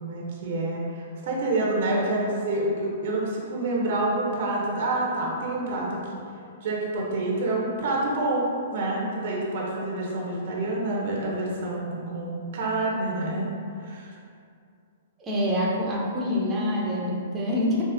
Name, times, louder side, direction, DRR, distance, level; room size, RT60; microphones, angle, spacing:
voice 1, 0.0-6.0 6.6-13.5 13.7-14.1, right 2 dB, 60° right, -3 dB, 0.6 m, -27 dB
voice 2, 15.2-17.8, left 1 dB, 20° right, -5 dB, 0.6 m, -26 dB
4.7 x 2.0 x 2.5 m, 2.4 s
hypercardioid pair, 125°, 0 cm